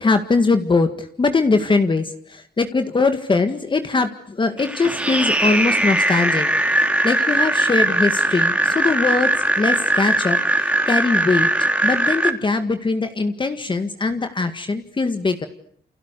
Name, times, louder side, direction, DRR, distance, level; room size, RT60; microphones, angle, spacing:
voice 1, 0.0-6.5 6.7-9.3 9.6-11.5 11.8-15.5, left 3 dB, 30° left, 7 dB, 1.9 m, -21 dB
sound 1, 4.6-12.3, right 1 dB, 5° right, 3.2 m, -20 dB
29.5 x 29.0 x 6.8 m, 0.63 s
wide cardioid pair, 145°, 17 cm